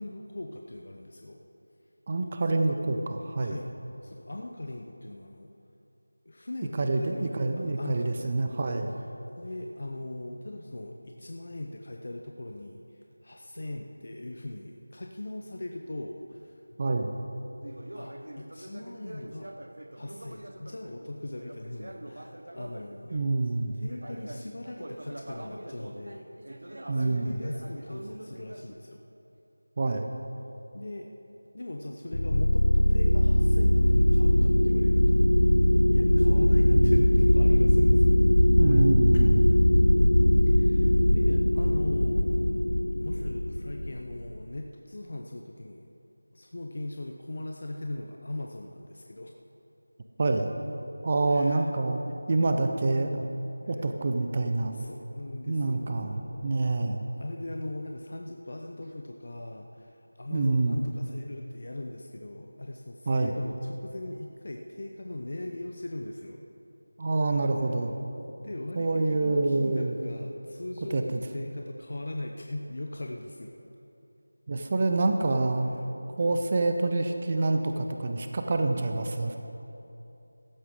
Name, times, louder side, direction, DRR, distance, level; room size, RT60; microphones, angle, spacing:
voice 1, 0.0-1.4 3.4-3.7 4.0-5.5 6.3-8.5 9.4-16.8 17.9-19.5 19.9-23.2 23.8-26.3 26.7-29.0 30.7-31.1 31.5-35.3 35.9-38.2 39.1-39.2 40.5-42.7 42.9-45.9 46.3-49.4 51.3-51.7 54.7-56.9 57.1-66.4 68.4-73.5, left 1 dB, 55° left, 2 dB, 0.8 m, -40 dB
voice 2, 2.1-3.6 6.8-8.9 16.8-17.2 23.1-23.8 26.9-27.4 29.8-30.1 36.7-37.0 38.6-39.5 50.2-50.5 51.0-52.0 52.3-53.3 53.7-54.8 55.5-57.0 60.3-60.8 63.1-63.3 67.0-67.9 68.7-69.9 70.9-71.2 74.5-75.7 76.2-79.4, right 2 dB, 30° right, 5 dB, 0.7 m, -27 dB
Conversation, 17.6-23.4 23.8-28.7, right 1 dB, 70° right, 1.0 m, -44 dB
sound 1, 32.1-44.4, left 1 dB, 85° left, 0.5 m, -21 dB
15.5 x 13.0 x 3.8 m, 2.9 s
figure-of-eight pair, 170°, 0 cm